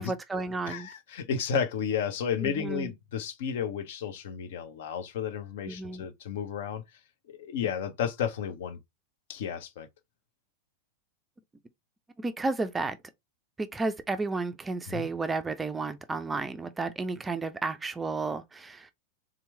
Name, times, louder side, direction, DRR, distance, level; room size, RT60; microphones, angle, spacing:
voice 1, 0.0-0.9 2.4-2.9 5.7-6.0 12.2-13.0 13.6-18.9, right 3 dB, 15° right, 0.4 m, -32 dB
voice 2, 0.7-6.8 7.3-8.8 9.3-9.9 14.9-15.1, left 7 dB, 55° left, 0.7 m, -32 dB
3.6 x 3.0 x 3.2 m
figure-of-eight pair, 90°, 0 cm